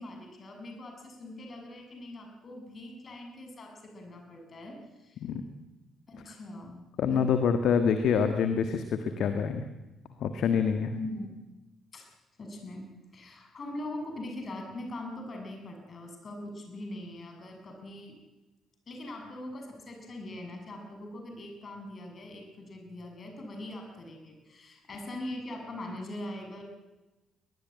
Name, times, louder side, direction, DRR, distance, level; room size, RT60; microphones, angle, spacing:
voice 1, 0.0-5.2 6.1-7.3 10.9-11.4 11.9-12.1 12.4-18.2 18.9-26.6, left 1 dB, 40° left, 3 dB, 7.2 m, -42 dB
voice 2, 7.0-9.6 10.2-10.9, left 6 dB, 55° left, 8 dB, 1.6 m, -26 dB
21.0 x 21.0 x 9.1 m, 1.1 s
figure-of-eight pair, 40°, 0 cm